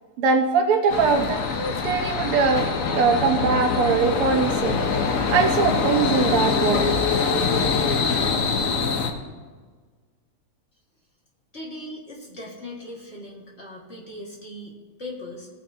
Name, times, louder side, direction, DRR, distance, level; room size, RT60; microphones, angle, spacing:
voice 1, 0.2-2.7 2.9-4.8 5.3-7.0, right 5 dB, 80° right, 5 dB, 2.0 m, -22 dB
sound 1, 0.9-9.1, left 5 dB, 55° left, 1.0 m, -24 dB
voice 2, 11.5-15.5, left 1 dB, 30° left, -3 dB, 2.2 m, -39 dB
17.5 x 9.1 x 2.8 m, 1.4 s
omnidirectional pair, 2.4 m